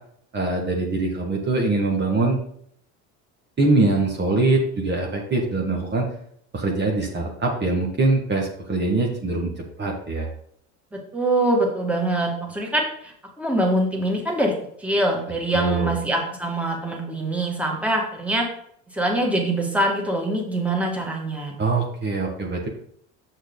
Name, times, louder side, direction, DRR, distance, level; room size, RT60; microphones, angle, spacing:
voice 1, 0.3-2.4 3.6-6.1 6.5-9.5 9.8-10.3 15.5-16.0 21.6-22.7, right 2 dB, 35° right, 0 dB, 1.7 m, -23 dB
voice 2, 10.9-18.5 18.9-21.5, right 1 dB, 5° right, 0 dB, 2.0 m, -24 dB
6.7 x 6.3 x 4.0 m, 0.66 s
supercardioid pair, 85°, 32 cm